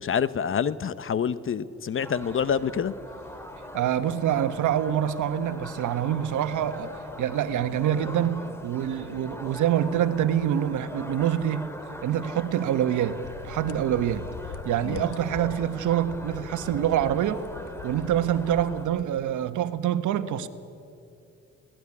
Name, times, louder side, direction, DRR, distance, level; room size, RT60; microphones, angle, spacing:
voice 1, 0.0-2.9 14.8-15.1, left 7 dB, 45° left, 16 dB, 0.9 m, -27 dB
sound 1, 2.0-18.9, left 1 dB, 10° left, 2.3 m, -41 dB
voice 2, 3.7-6.9 7.2-11.7 12.0-13.2 13.4-14.3 14.6-17.4 17.8-20.5, right 10 dB, 80° right, 10 dB, 1.4 m, -26 dB
sound 2, 13.2-19.6, left 8 dB, 80° left, 1.4 m, -43 dB
27.0 x 18.5 x 9.9 m, 2.6 s
cardioid pair, 90°, 30 cm